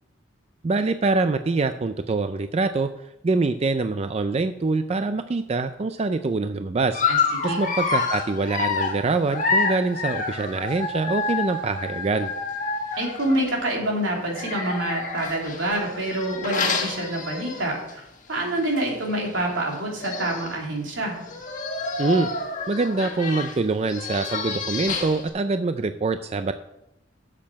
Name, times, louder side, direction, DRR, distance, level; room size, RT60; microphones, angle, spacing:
voice 1, 0.6-2.9 3.2-7.0 7.4-12.3 22.0-22.3 22.7-26.5, right 3 dB, 35° right, 9 dB, 0.4 m, -24 dB
Dog, 6.9-13.5 14.3-17.9 18.3-18.5 18.8-18.9 19.7-19.8 20.0-20.6 21.2-25.3, left 4 dB, 40° left, 1.6 m, -28 dB
voice 2, 13.0-18.0 18.3-21.2, right 1 dB, 80° right, -1 dB, 3.1 m, -26 dB
8.7 x 7.5 x 6.2 m, 0.85 s
head